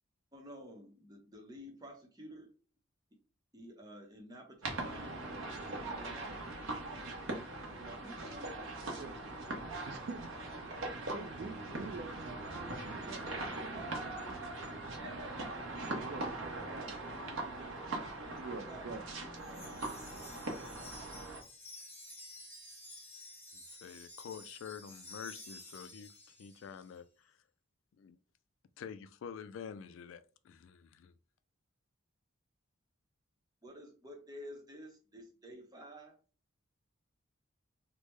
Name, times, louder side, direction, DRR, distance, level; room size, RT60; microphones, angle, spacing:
voice 1, 0.3-2.5 3.5-5.3 5.9-6.5 7.8-8.6 17.1-17.4 18.2-18.9 20.3-20.4 33.6-36.2, equal, 20° right, 0.7 m, -51 dB
sound 1, 4.6-21.4, right 2 dB, 90° right, 0.8 m, -41 dB
voice 2, 9.0-9.3 9.8-10.3 10.8-14.1 15.3-17.7 18.2-19.0 19.6-19.7, right 4 dB, 55° right, 0.3 m, -48 dB
Wind chime, 19.4-26.9, left 1 dB, 10° left, 0.9 m, -52 dB
voice 3, 23.5-26.1 26.4-27.4 28.0-28.2 28.8-31.1, left 7 dB, 70° left, 0.3 m, -48 dB
3.3 x 2.1 x 3.1 m
head